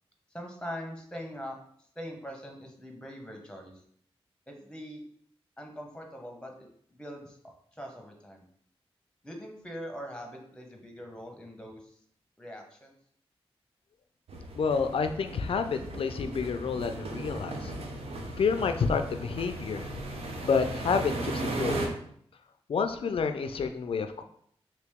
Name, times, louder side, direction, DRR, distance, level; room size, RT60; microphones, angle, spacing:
voice 1, 0.3-1.6 1.9-3.8 4.5-5.0 5.6-7.4 7.7-8.5 9.2-12.0 12.4-13.0, equal, 10° left, 2 dB, 0.8 m, -42 dB
sound 1, 14.3-21.9, right 2 dB, 75° right, 0.6 m, -36 dB
voice 2, 14.6-17.7 18.4-20.0 20.4-21.9 22.7-24.2, left 5 dB, 65° left, 7 dB, 0.4 m, -29 dB
2.9 x 2.9 x 3.5 m, 0.65 s
cardioid pair, 70°, 10 cm